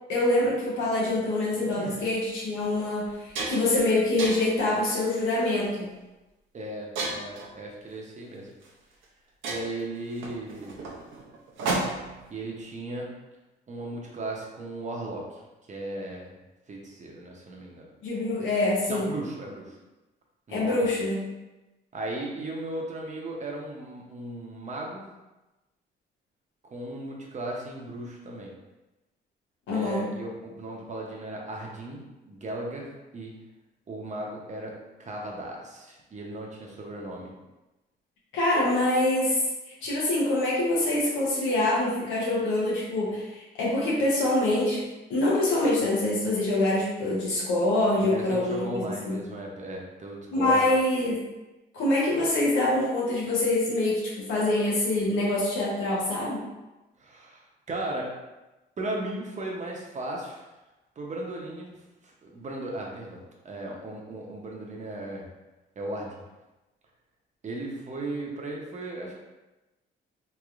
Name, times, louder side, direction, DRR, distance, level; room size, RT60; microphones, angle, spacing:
voice 1, 0.1-5.9 18.0-19.1 20.5-21.2 29.7-30.0 38.3-39.4 39.8-44.8 45.1-48.8 49.1-49.2 50.3-51.2 51.7-56.4, left 2 dB, 90° left, -6 dB, 0.9 m, -25 dB
sound 1, 1.9-2.1 2.6-2.8 3.0-3.8 4.2-4.6 5.3-5.6 7.0-7.5 8.6-8.7 9.0-9.1 9.4-12.2, right 2 dB, 80° right, 0.7 m, -32 dB
voice 2, 6.5-8.5 9.5-10.8 12.3-13.1 13.7-15.4 15.7-16.3 16.7-17.9 18.9-19.8 20.5-20.9 21.9-25.1 26.6-28.5 29.7-33.3 33.9-34.7 35.0-37.3 48.0-50.6 57.0-58.2 58.8-60.5 61.0-61.8 62.0-65.3 65.8-66.2 67.4-69.2, right 1 dB, 35° right, -1 dB, 0.8 m, -36 dB
3.1 x 3.0 x 2.4 m, 1.1 s
cardioid pair, 90°, 20 cm